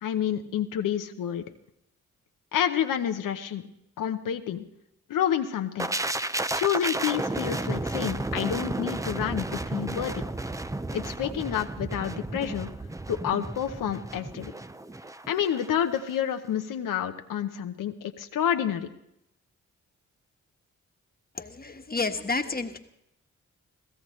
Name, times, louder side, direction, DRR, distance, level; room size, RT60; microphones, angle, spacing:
voice 1, 0.0-1.4 2.5-3.6 4.0-4.6 5.1-5.9 6.5-10.2 10.9-12.7 13.1-14.5 15.3-18.9, left 9 dB, 90° left, 6 dB, 0.9 m, -29 dB
sound 1, 5.8-15.7 16.0-16.2, right 2 dB, 10° right, 0.6 m, -32 dB
voice 2, 21.3-22.8, left 3 dB, 30° left, 6 dB, 1.4 m, -30 dB
22.0 x 15.5 x 3.2 m, 0.79 s
cardioid pair, 55°, 32 cm